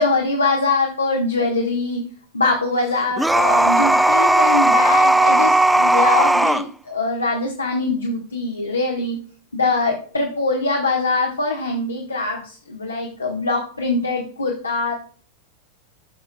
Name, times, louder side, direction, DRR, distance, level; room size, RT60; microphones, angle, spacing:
voice 1, 0.0-2.0 2.3-9.2 9.5-14.9, left 3 dB, 75° left, 1 dB, 1.2 m, -23 dB
sound 1, 3.2-6.6, right 1 dB, 5° right, 0.4 m, -16 dB
14.5 x 5.8 x 2.2 m, 0.42 s
figure-of-eight pair, 90°, 0 cm